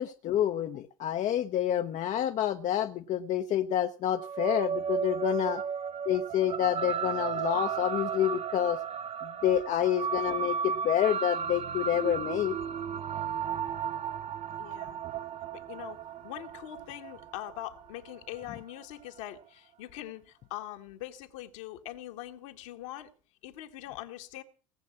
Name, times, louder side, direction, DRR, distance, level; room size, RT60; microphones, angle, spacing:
voice 1, 0.0-5.6 6.1-8.8 9.2-12.6, left 11 dB, 45° left, 0.9 m, -28 dB
sound 1, 4.1-18.8, right 7 dB, 35° right, 0.8 m, -34 dB
voice 2, 14.6-15.0 15.5-23.1 23.4-24.4, left 14 dB, 70° left, 1.7 m, -43 dB
18.5 x 7.3 x 7.2 m
hypercardioid pair, 70°, 17 cm